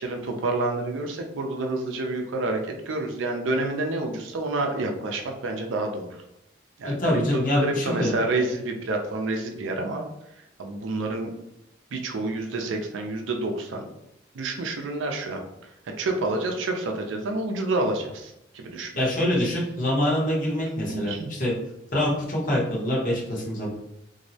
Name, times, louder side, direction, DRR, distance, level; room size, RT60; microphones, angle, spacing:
voice 1, 0.0-6.2 6.8-10.0 10.6-11.3 11.9-13.9 14.3-18.9 20.9-21.3, right 2 dB, 80° right, 3 dB, 0.4 m, -28 dB
voice 2, 6.8-8.1 18.9-21.5 21.9-23.7, left 1 dB, 45° left, -5 dB, 0.8 m, -25 dB
2.6 x 2.0 x 2.7 m, 0.83 s
head